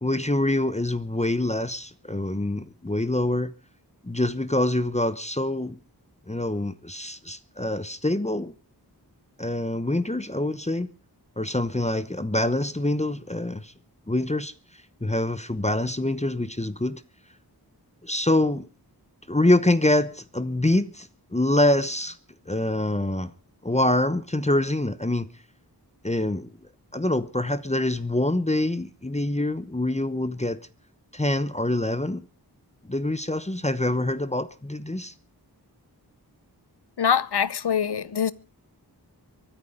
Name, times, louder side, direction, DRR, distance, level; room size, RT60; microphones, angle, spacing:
voice 1, 0.0-3.5 4.0-5.8 6.3-8.5 9.4-10.9 11.4-13.7 14.1-14.5 15.0-17.0 18.0-18.7 19.3-22.2 22.5-23.3 23.6-25.3 26.0-26.5 26.9-30.6 31.1-32.3 32.9-35.1, left 1 dB, 15° left, 0.9 m, -25 dB
voice 2, 37.0-38.3, left 7 dB, 80° left, 0.8 m, -24 dB
24.0 x 9.8 x 5.2 m
wide cardioid pair, 55°, 40 cm